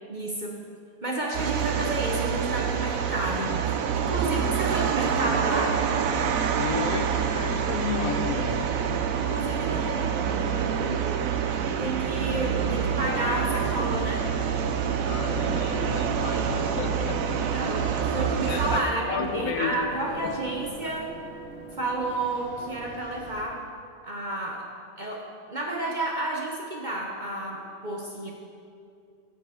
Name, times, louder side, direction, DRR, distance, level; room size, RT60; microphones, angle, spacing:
voice 1, 0.1-0.6 1.0-5.8 9.2-11.2 11.8-14.3 17.5-21.2 21.7-23.6 24.0-24.7 25.0-28.3, right 2 dB, 35° right, -1 dB, 0.8 m, -31 dB
sound 1, 1.3-18.8, right 7 dB, 65° right, 1.0 m, -27 dB
voice 2, 6.6-9.0 15.0-17.4 18.5-18.8 19.1-19.8, left 6 dB, 65° left, 5 dB, 1.0 m, -32 dB
sound 2, 11.6-23.4, right 1 dB, 85° right, 2.0 m, -41 dB
15.0 x 5.4 x 4.9 m, 2.4 s
omnidirectional pair, 1.7 m